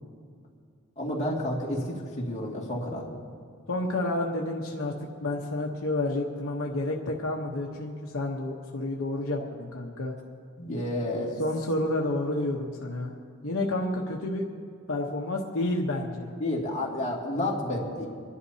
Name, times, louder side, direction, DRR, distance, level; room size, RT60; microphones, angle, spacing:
voice 1, 1.0-3.1 10.6-11.4 16.4-18.1, left 1 dB, 30° left, -4 dB, 2.3 m, -30 dB
voice 2, 3.7-4.9 5.2-10.1 11.4-13.1 13.4-14.5 14.9-16.3, left 2 dB, 70° left, 0 dB, 1.0 m, -30 dB
26.5 x 11.0 x 2.8 m, 2.2 s
head